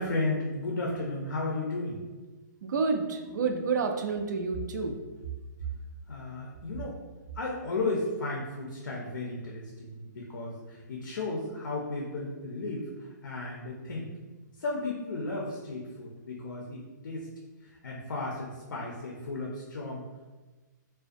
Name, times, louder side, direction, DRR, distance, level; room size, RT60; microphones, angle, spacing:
voice 1, 0.0-2.0 5.7-5.8 6.1-7.0 7.3-14.1 14.6-17.3 17.6-20.1, left 2 dB, 85° left, -2 dB, 0.5 m, -34 dB
voice 2, 2.6-5.0, right 4 dB, 65° right, 5 dB, 0.4 m, -29 dB
2.4 x 2.2 x 2.5 m, 1.2 s
hypercardioid pair, 165°, 10 cm